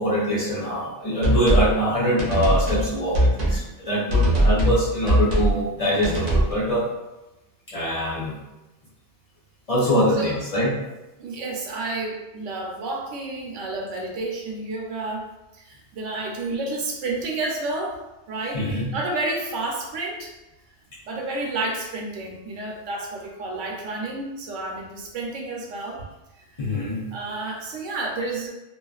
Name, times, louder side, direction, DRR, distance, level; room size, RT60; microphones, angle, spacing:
voice 1, 0.0-6.8 7.7-8.4 9.7-10.7 18.5-18.9 26.6-27.0, equal, 50° left, -7 dB, 0.4 m, -23 dB
sound 1, 1.2-1.7 2.2-2.9 3.1-3.6 4.1-4.8 5.1-5.5 6.0-6.5, equal, 50° right, 0.5 m, -20 dB
voice 2, 11.2-15.3 15.5-18.0 18.3-20.3 21.1-26.1 26.4-26.8 27.1-28.5, right 2 dB, 80° right, -1 dB, 0.9 m, -30 dB
2.4 x 2.3 x 2.3 m, 0.98 s
omnidirectional pair, 1.3 m